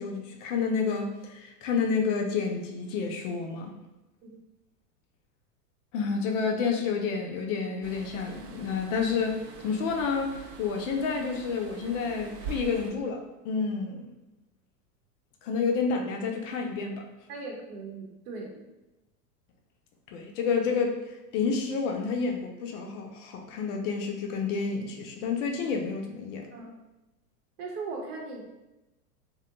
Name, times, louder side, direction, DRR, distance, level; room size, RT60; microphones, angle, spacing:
voice 1, 0.0-3.7 5.9-14.1 15.4-17.0 20.1-26.5, left 5 dB, 50° left, 2 dB, 0.5 m, -29 dB
sound 1, 7.8-12.9, right 4 dB, 45° right, 0.4 m, -44 dB
voice 2, 17.3-18.7 26.5-26.7 27.6-28.4, right 3 dB, 65° right, 0 dB, 0.9 m, -38 dB
2.3 x 2.1 x 2.8 m, 1.0 s
hypercardioid pair, 105°, 49 cm